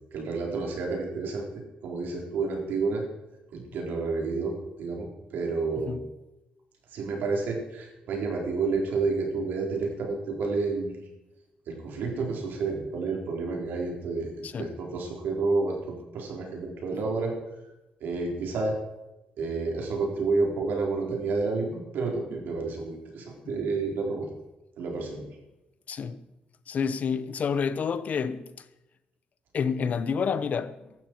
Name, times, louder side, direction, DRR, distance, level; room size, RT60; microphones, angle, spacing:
voice 1, 0.1-3.0 3.5-6.0 6.9-11.0 11.7-17.3 18.0-18.8 19.4-24.3 24.8-25.3, right 3 dB, 85° right, 3.8 m, -30 dB
voice 2, 25.9-26.2 26.7-28.6 29.5-30.9, left 6 dB, 50° left, 0.8 m, -29 dB
15.5 x 12.0 x 4.6 m
cardioid pair, 125°, 3 cm